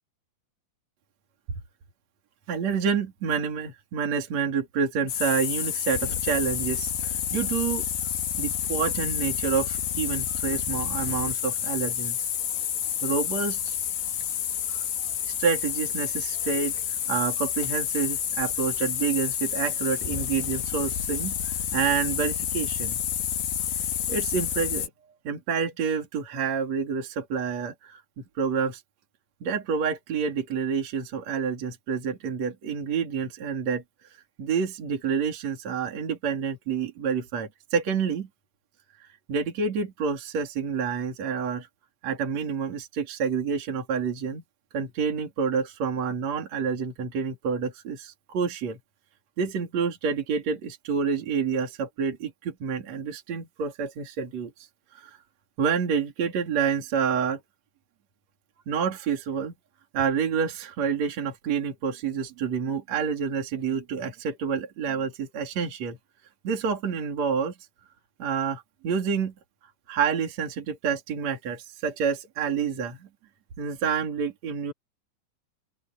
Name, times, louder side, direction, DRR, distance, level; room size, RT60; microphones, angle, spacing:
voice 1, 2.5-7.8 8.4-12.2 13.0-13.8 14.7-14.8 15.4-23.0 24.1-24.9 25.2-28.0 28.4-28.8 29.4-33.8 34.4-38.3 39.0-41.7 42.0-44.4 44.7-48.8 49.4-54.7 54.9-55.2 55.6-57.4 58.7-59.5 59.9-66.0 66.4-67.5 68.2-69.3 69.9-73.1 73.6-74.7, right 6 dB, 50° right, 4.0 m, -28 dB
sound 1, 5.1-24.9, left 9 dB, 85° left, 3.8 m, -29 dB
open air
omnidirectional pair, 4.1 m